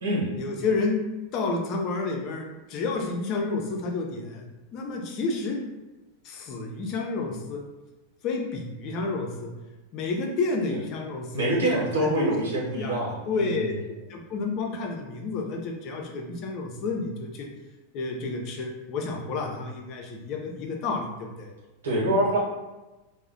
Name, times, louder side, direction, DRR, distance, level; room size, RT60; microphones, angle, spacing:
voice 1, 0.4-1.0 1.3-4.4 4.7-5.6 6.2-7.6 8.2-9.5 9.9-11.5 11.8-12.3 12.7-13.8 14.1-17.5 17.9-21.5, left 3 dB, 45° left, 1 dB, 0.6 m, -30 dB
voice 2, 11.3-13.7 21.8-22.4, right 1 dB, 85° right, -4 dB, 1.0 m, -25 dB
2.3 x 2.1 x 3.8 m, 1.1 s
hypercardioid pair, 105°, 0 cm